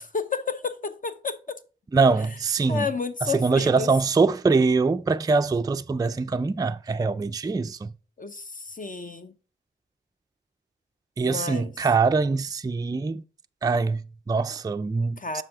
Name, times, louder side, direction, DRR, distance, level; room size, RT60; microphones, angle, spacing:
voice 1, 0.0-1.6 2.7-3.9 8.2-9.3 11.2-11.7 15.2-15.4, left 5 dB, 40° left, 0.7 m, -31 dB
voice 2, 1.9-2.9 3.2-7.9 11.2-13.2 13.6-15.4, right 4 dB, 20° right, 0.3 m, -23 dB
7.5 x 5.5 x 3.6 m
cardioid pair, 60°, 21 cm